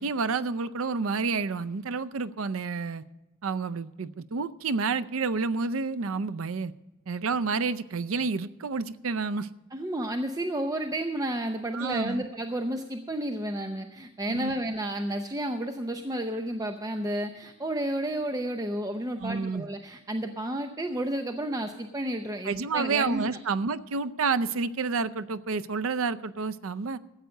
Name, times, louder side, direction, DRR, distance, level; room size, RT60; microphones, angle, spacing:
voice 1, 0.0-3.0 3.4-6.7 7.1-9.5 11.7-12.2 14.3-14.5 19.2-19.7 22.5-27.0, right 4 dB, 80° right, 12 dB, 0.5 m, -29 dB
voice 2, 9.7-23.2, right 1 dB, 15° right, 5 dB, 0.6 m, -31 dB
14.0 x 8.1 x 6.4 m, 1.0 s
head